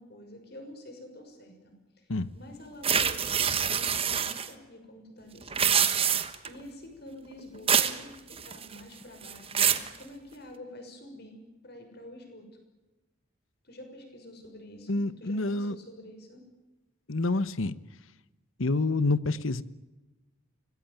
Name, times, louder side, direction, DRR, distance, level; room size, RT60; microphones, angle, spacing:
voice 1, 0.0-12.5 13.6-16.4, left 1 dB, 50° left, 5 dB, 6.3 m, -48 dB
sound 1, 2.8-4.5 5.4-6.5 7.7-8.0 8.3-8.8 9.2-9.9, right 8 dB, 25° right, 1.3 m, -25 dB
voice 2, 14.9-15.8 17.1-17.7 18.6-19.6, left 2 dB, 75° left, 16 dB, 1.1 m, -27 dB
25.5 x 20.5 x 9.1 m, 1.1 s
head